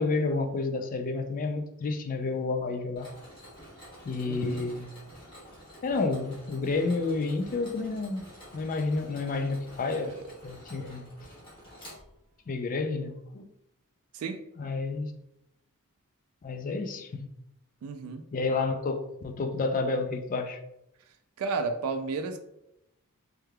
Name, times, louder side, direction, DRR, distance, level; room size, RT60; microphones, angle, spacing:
voice 1, 0.0-3.1 4.1-4.9 5.8-8.3 8.5-10.1 10.4-11.1 12.5-13.5 14.6-15.1 16.4-17.3 18.3-20.6, left 3 dB, 40° left, 0.3 m, -30 dB
Mechanisms, 3.0-12.5, equal, 25° left, 1.0 m, -49 dB
voice 2, 4.2-4.6 9.9-10.2 10.7-10.9 14.1-14.4 17.8-18.2 21.4-22.4, right 4 dB, 70° right, 0.3 m, -33 dB
3.4 x 3.2 x 2.2 m
head